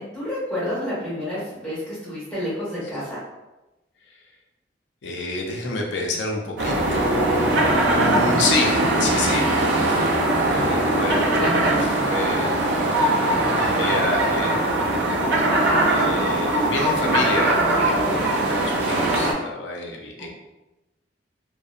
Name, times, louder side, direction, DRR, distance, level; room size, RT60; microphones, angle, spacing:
voice 1, 0.0-3.2 7.9-8.6 10.5-10.9 11.4-11.9 15.5-15.9, equal, 5° left, -10 dB, 1.3 m, -29 dB
voice 2, 5.0-9.5 9.8-11.8 12.1-12.6 13.2-14.6 15.9-20.3, left 2 dB, 75° left, 0 dB, 0.4 m, -28 dB
sound 1, 6.6-19.3, right 1 dB, 75° right, 0.5 m, -21 dB
2.7 x 2.0 x 2.4 m, 1.0 s
head